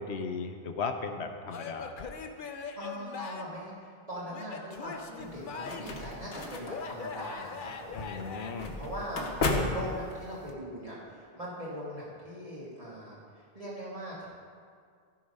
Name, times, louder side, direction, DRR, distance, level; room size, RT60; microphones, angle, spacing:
voice 1, 0.0-2.1 7.9-8.7, left 4 dB, 90° left, 6 dB, 1.1 m, -36 dB
Male speech man speaking / Yell / Laughter, 1.5-3.6 4.3-6.0 6.7-8.5, left 5 dB, 55° left, 0.8 m, -41 dB
voice 2, 2.5-8.1 8.6-14.3, equal, 35° right, -8 dB, 1.8 m, -41 dB
sound 1, 5.2-10.5, left 2 dB, 70° left, 1.2 m, -35 dB
15.0 x 5.1 x 5.3 m, 2.1 s
omnidirectional pair, 1.1 m